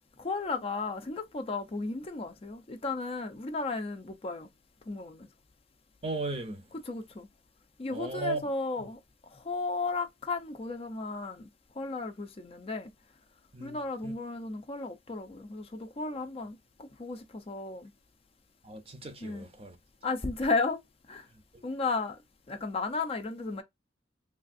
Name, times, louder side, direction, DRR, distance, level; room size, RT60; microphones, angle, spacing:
voice 1, 0.2-4.5 4.9-5.3 6.7-7.3 7.8-9.0 9.3-11.5 11.8-12.9 13.6-17.9 19.2-19.5 20.0-20.8 21.1-21.3 21.6-22.2 22.5-23.6, left 3 dB, 30° left, 0.5 m, -34 dB
voice 2, 6.0-6.6 7.9-8.5 13.5-13.8 14.0-14.1 18.6-19.8 21.5-21.6, right 3 dB, 30° right, 0.6 m, -36 dB
3.4 x 2.4 x 2.5 m
head